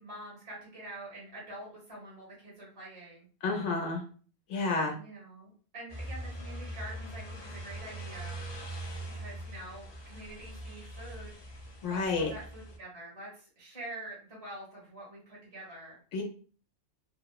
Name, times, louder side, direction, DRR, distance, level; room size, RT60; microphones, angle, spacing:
voice 1, 0.0-3.3 4.8-8.4 9.0-11.3 11.8-16.0, right 1 dB, 30° right, -5 dB, 1.2 m, -46 dB
voice 2, 3.4-4.0 4.5-4.9 11.8-12.3 16.1-16.2, left 3 dB, 75° left, 1 dB, 0.9 m, -30 dB
sound 1, 5.9-12.8, right 1 dB, 45° left, 0.3 m, -42 dB
2.9 x 2.0 x 2.3 m, 0.41 s
omnidirectional pair, 1.2 m